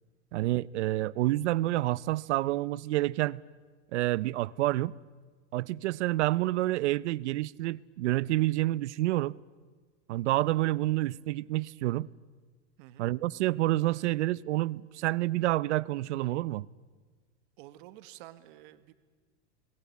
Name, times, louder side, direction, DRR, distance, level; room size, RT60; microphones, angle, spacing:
voice 1, 0.3-3.4 3.9-4.9 5.5-9.4 10.1-12.1 13.0-16.7, right 17 dB, 70° right, 0.7 m, -28 dB
voice 2, 12.8-13.1 17.6-18.9, right 15 dB, 45° right, 1.5 m, -50 dB
29.5 x 21.0 x 8.4 m
supercardioid pair, 170°, 35 cm